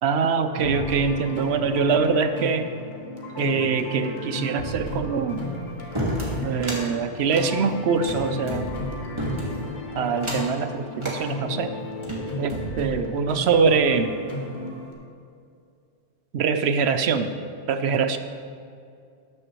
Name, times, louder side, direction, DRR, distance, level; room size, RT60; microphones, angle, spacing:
voice 1, 0.0-2.7 3.4-5.5 6.4-8.7 9.6-9.7 9.9-11.7 12.4-14.2 16.3-17.3 17.7-18.2, right 5 dB, 75° right, 9 dB, 0.8 m, -23 dB
sound 1, 0.5-14.9, left 1 dB, 45° left, 1.4 m, -34 dB
sound 2, 5.9-6.8 7.2-8.6 9.2-9.7 10.1-10.6 11.0-11.2 11.8-12.7, equal, 25° right, 1.8 m, -31 dB
13.0 x 9.5 x 3.0 m, 2.4 s
omnidirectional pair, 1.1 m